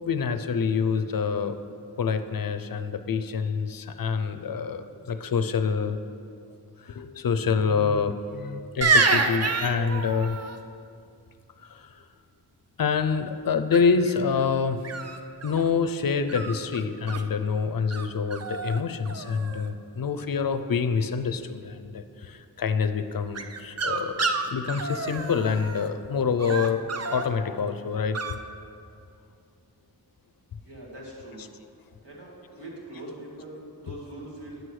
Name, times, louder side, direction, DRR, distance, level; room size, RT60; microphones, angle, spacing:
voice 1, 0.1-1.6 2.0-6.0 6.8-10.4 11.7-12.0 12.8-14.8 15.4-26.8 27.1-28.2 31.4-31.5 33.9-34.0, left 5 dB, 55° left, 10 dB, 0.5 m, -26 dB
sound 1, 8.8-10.6 13.7-14.1 14.8-15.7 16.3-17.2 17.9-18.0 18.3-18.8 19.0-19.7 23.3-25.9 26.4-27.3 28.1-28.3, right 3 dB, 40° right, 0.6 m, -28 dB
voice 2, 30.6-31.5 32.0-34.6, right 1 dB, 85° right, -5 dB, 1.8 m, -42 dB
8.9 x 7.8 x 3.2 m, 2.5 s
cardioid pair, 40°, 41 cm